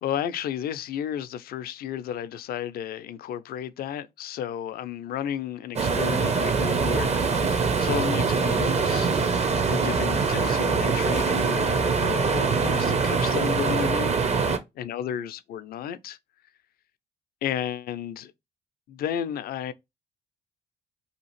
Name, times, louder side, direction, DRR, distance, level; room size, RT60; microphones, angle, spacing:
voice 1, 0.0-9.1 9.7-14.2 14.8-16.2 17.4-18.3 18.9-19.7, left 9 dB, 55° left, 0.4 m, -32 dB
sound 1, 5.8-14.6, right 5 dB, 35° right, 0.6 m, -23 dB
2.8 x 2.4 x 3.0 m
hypercardioid pair, 55°, 19 cm